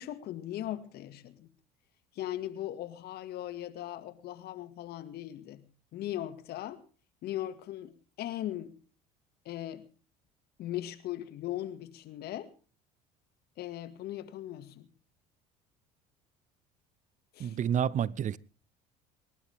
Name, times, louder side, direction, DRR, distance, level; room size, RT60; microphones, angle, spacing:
voice 1, 0.0-1.5 2.2-5.6 5.9-6.8 7.2-8.7 9.5-9.8 10.6-12.5 13.6-14.9 17.3-17.6, left 13 dB, 60° left, 2.1 m, -39 dB
voice 2, 17.4-18.4, right 9 dB, 40° right, 0.7 m, -29 dB
27.5 x 12.0 x 3.6 m
hypercardioid pair, 70°, 19 cm